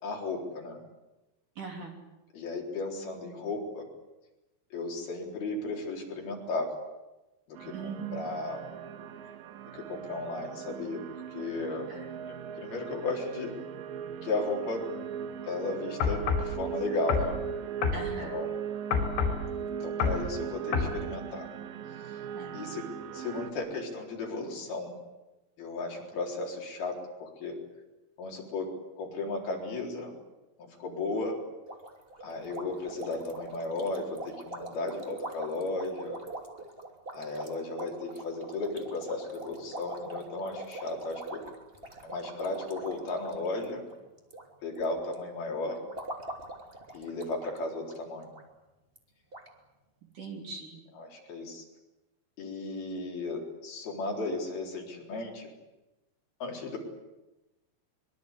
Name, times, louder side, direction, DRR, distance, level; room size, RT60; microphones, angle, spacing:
voice 1, 0.0-0.8 2.3-3.8 4.7-6.7 7.5-7.7 8.1-8.6 9.7-11.9 12.6-13.5 14.2-14.8 15.5-17.4 18.2-18.5 19.8-21.5 22.6-22.8 23.1-24.9 25.6-27.5 28.2-28.7 29.0-30.1 30.8-31.3 32.2-36.2 37.1-41.4 42.0-43.8 44.6-45.8 46.9-48.3 51.1-51.6 52.4-55.5 56.4-56.8, left 3 dB, 55° left, 0 dB, 5.6 m, -35 dB
voice 2, 1.6-2.0 7.7-8.3 11.9-12.2 17.9-18.5 22.3-22.8 50.1-50.8, right 5 dB, 45° right, 2 dB, 4.3 m, -41 dB
sound 1, 7.6-23.5, right 8 dB, 65° right, 2.4 m, -39 dB
sound 2, 16.0-16.5 17.1-17.3 17.8-18.0 18.9-19.4 20.0-20.2 20.7-20.9, left 6 dB, 75° left, 6.5 m, -27 dB
sound 3, 31.7-44.4 44.7-45.1 45.6-47.6 47.8-48.0 48.3-48.4 49.0-49.1 49.3-49.5, right 2 dB, 15° right, 2.1 m, -43 dB
24.5 x 23.5 x 8.3 m, 1.0 s
omnidirectional pair, 5.4 m